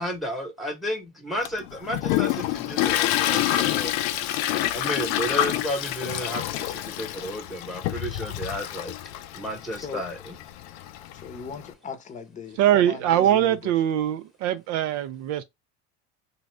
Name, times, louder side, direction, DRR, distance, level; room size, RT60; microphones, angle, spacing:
voice 1, 0.0-3.9 4.7-8.9 9.3-10.4, equal, ahead, 0.9 m, -32 dB
Toilet flush, 1.5-11.7, left 12 dB, 85° left, 0.5 m, -28 dB
voice 2, 9.7-10.0 11.1-13.7, left 5 dB, 25° left, 0.7 m, -38 dB
voice 3, 12.6-15.4, right 11 dB, 70° right, 0.5 m, -22 dB
2.7 x 2.4 x 3.1 m
supercardioid pair, 105°, 31 cm